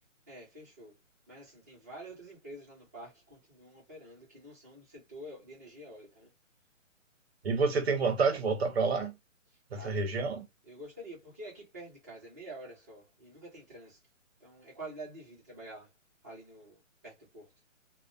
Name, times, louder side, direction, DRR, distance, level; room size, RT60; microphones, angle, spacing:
voice 1, 0.3-0.9 1.3-3.1 3.6-4.8 5.1-6.1 9.7-10.1 10.7-13.9 14.4-15.8 16.2-16.7 17.3-17.4, right 1 dB, 15° right, 0.5 m, -47 dB
voice 2, 7.4-9.1 9.7-10.4, right 4 dB, 55° right, 0.6 m, -28 dB
2.5 x 2.1 x 2.5 m
hypercardioid pair, 155°, 39 cm